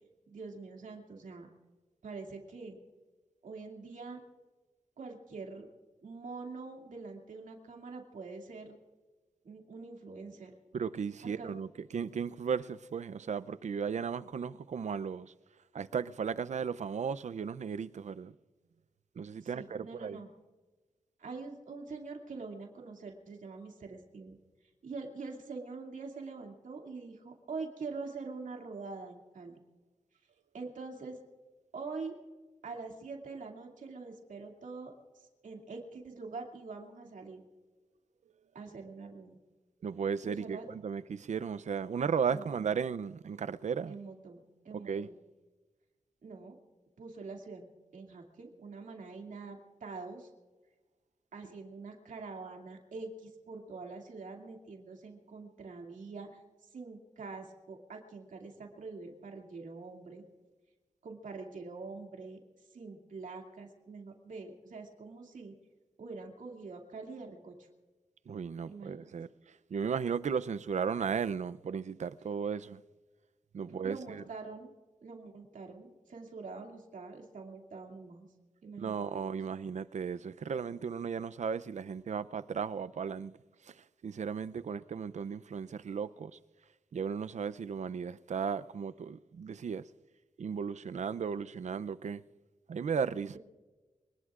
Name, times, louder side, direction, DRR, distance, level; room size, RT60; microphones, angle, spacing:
voice 1, 0.3-1.5 2.0-2.8 3.4-4.2 5.0-5.7 6.0-8.8 9.4-10.5 11.4-11.5 19.4-20.3 21.2-24.4 24.8-29.6 30.5-31.2 31.7-32.1 32.6-37.4 38.5-39.4 40.2-40.7 42.3-42.6 43.9-45.2 46.2-46.5 47.0-50.3 51.3-60.2 61.0-62.4 62.7-65.5 66.0-67.7 68.7-69.1 73.6-74.7 75.0-78.3 78.6-79.4 93.2-93.4, right 4 dB, 90° right, 2.5 m, -45 dB
voice 2, 10.7-11.7 11.9-15.3 15.7-18.3 19.2-20.2 39.8-43.9 44.7-45.1 68.3-69.3 69.7-72.8 73.5-74.2 78.8-83.3 83.7-83.8 84.0-86.4 86.9-89.8 90.4-92.2 92.7-93.4, right 6 dB, 65° right, 0.5 m, -35 dB
25.5 x 19.5 x 2.5 m
wide cardioid pair, 115°, 13 cm